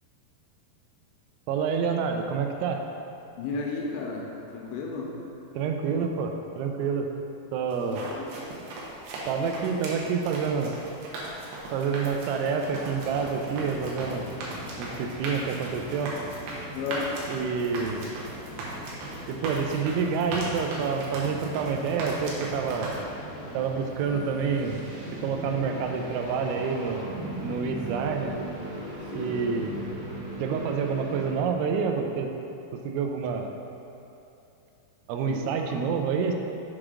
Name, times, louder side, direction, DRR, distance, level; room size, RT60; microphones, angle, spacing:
voice 1, 1.5-2.8 5.6-7.1 7.5-8.0 9.3-10.7 11.7-14.3 14.8-16.2 17.3-18.1 19.3-22.9 23.5-24.8 25.2-27.1 27.4-28.3 29.1-29.8 30.4-32.3 32.8-33.5 35.1-36.3, right 6 dB, 90° right, 4 dB, 2.9 m, -28 dB
voice 2, 3.4-5.1 7.8-8.3 16.7-17.1 28.0-28.4 29.1-29.5 35.2-35.9, left 4 dB, 85° left, -1 dB, 2.7 m, -34 dB
sound 1, 7.7-23.0, right 2 dB, 75° right, 2.8 m, -37 dB
sound 2, 12.7-29.9, equal, 70° left, 1.6 m, -42 dB
sound 3, 24.0-31.7, right 1 dB, 60° right, 2.5 m, -38 dB
7.2 x 4.9 x 3.7 m, 2.8 s
omnidirectional pair, 5.2 m